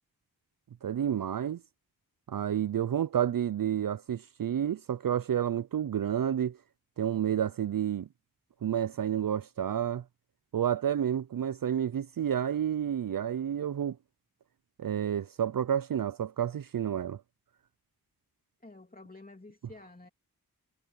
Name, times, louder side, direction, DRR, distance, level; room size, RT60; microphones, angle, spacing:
voice 1, 0.8-1.6 2.3-6.6 7.0-8.1 8.6-10.0 10.5-14.0 14.8-17.2, right 9 dB, 60° right, 0.5 m, -30 dB
voice 2, 18.6-20.1, left 2 dB, 25° left, 2.7 m, -50 dB
cardioid pair, 40°, 38 cm